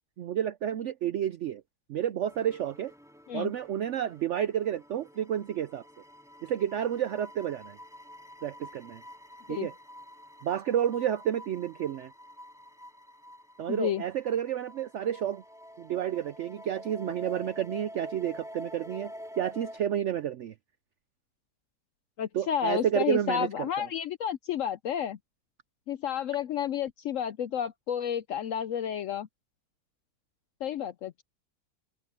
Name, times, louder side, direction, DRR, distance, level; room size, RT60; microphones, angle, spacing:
voice 1, 0.2-1.6 1.9-2.9 3.3-5.8 6.4-7.8 8.4-9.0 9.5-9.7 10.4-12.1 13.6-15.4 15.8-20.5 22.3-23.9, right 10 dB, 75° right, 0.6 m, -30 dB
sound 1, 2.3-19.8, equal, ahead, 3.6 m, -48 dB
voice 2, 13.7-14.0 22.2-25.2 25.9-29.3 30.6-31.2, left 9 dB, 70° left, 0.7 m, -31 dB
open air
omnidirectional pair, 1.8 m